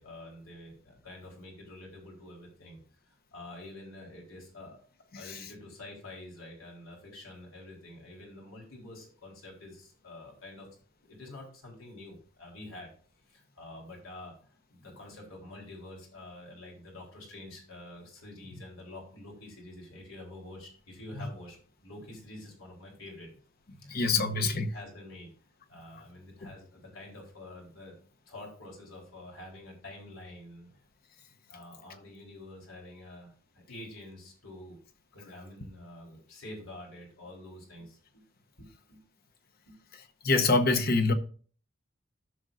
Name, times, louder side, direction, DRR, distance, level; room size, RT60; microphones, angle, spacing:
voice 1, 0.0-2.8 3.3-4.8 5.1-10.7 11.1-12.9 13.3-14.3 14.7-23.3 23.8-25.3 25.7-28.0 28.3-30.7 31.5-34.8 35.1-38.2 38.6-39.0 39.7-39.8, left 1 dB, 85° left, 3.8 m, -47 dB
voice 2, 23.9-24.7 40.2-41.1, left 3 dB, 50° left, 0.9 m, -25 dB
14.5 x 6.2 x 2.6 m
head